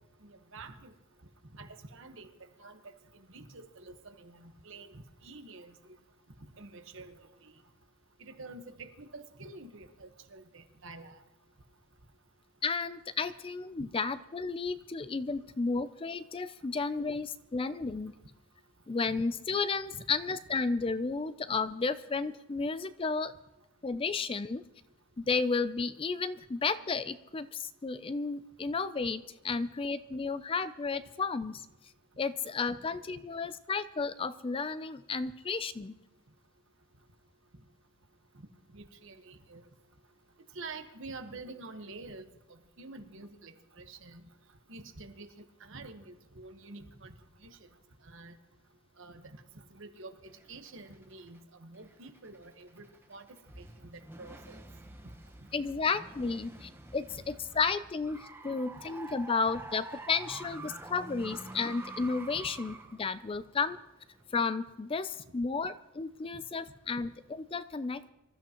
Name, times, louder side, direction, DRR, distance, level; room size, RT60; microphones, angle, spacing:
voice 1, 0.2-0.9 1.6-2.3 2.6-2.8 3.1-5.7 6.6-7.5 8.2-11.2 19.9-20.0 38.7-39.6 40.5-44.2 44.7-45.3 45.6-47.1 47.4-47.6 48.0-48.3 49.0-49.2 49.7-54.6, right 3 dB, 60° right, 6 dB, 1.3 m, -48 dB
voice 2, 12.6-18.1 18.9-23.3 23.8-24.6 25.2-31.6 32.2-35.9 55.5-63.8 64.3-68.1, left 4 dB, 25° left, 13 dB, 0.4 m, -33 dB
sound 1, 50.2-51.4 51.8-64.4, right 2 dB, 10° right, 0.9 m, -48 dB
25.5 x 13.0 x 3.0 m, 1.0 s
head